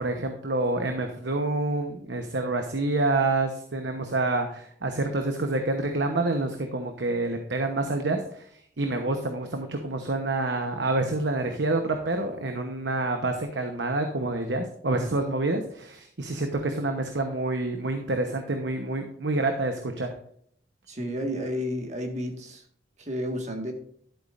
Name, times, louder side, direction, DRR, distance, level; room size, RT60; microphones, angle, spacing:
voice 1, 0.0-8.4 8.8-20.1, right 2 dB, 90° right, 5 dB, 1.0 m, -27 dB
voice 2, 20.9-22.6 23.0-23.7, equal, 40° right, 3 dB, 1.7 m, -31 dB
12.0 x 8.3 x 2.6 m, 0.63 s
head